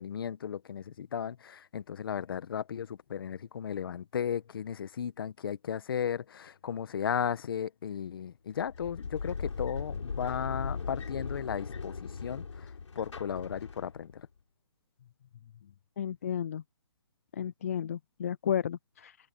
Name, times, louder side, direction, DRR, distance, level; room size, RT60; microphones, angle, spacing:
voice 1, 0.0-14.3, left 8 dB, 50° left, 1.3 m, -35 dB
sound 1, 8.6-14.2, left 5 dB, 90° left, 6.6 m, -38 dB
voice 2, 16.0-16.6 17.3-19.2, left 9 dB, 30° left, 0.4 m, -33 dB
open air
hypercardioid pair, 165°, 15 cm